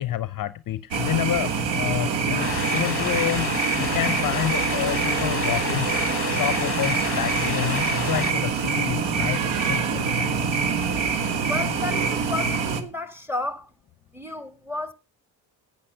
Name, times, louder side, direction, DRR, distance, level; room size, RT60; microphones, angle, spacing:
voice 1, 0.0-5.9 6.2-10.4, left 12 dB, 45° left, 0.6 m, -29 dB
sound 1, 0.9-12.8, right 5 dB, 70° right, 1.5 m, -25 dB
sound 2, 2.4-8.3, left 7 dB, 30° left, 0.9 m, -30 dB
voice 2, 11.5-13.7 14.1-14.9, left 2 dB, 5° right, 1.5 m, -32 dB
8.6 x 8.5 x 6.5 m
supercardioid pair, 75°, 46 cm